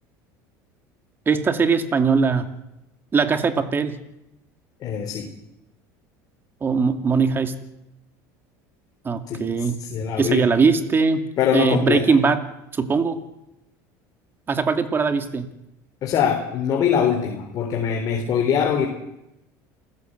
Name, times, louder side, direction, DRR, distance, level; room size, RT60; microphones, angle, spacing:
voice 1, 1.3-2.5 3.1-4.0 6.6-7.6 9.0-9.8 10.2-12.4 12.7-13.2 14.5-15.5, right 5 dB, 25° right, 8 dB, 2.4 m, -20 dB
voice 2, 4.8-5.3 9.3-10.4 11.4-12.0 16.0-18.9, left 8 dB, 45° left, 3 dB, 3.8 m, -23 dB
28.0 x 15.5 x 8.0 m, 0.90 s
supercardioid pair, 120°, 9 cm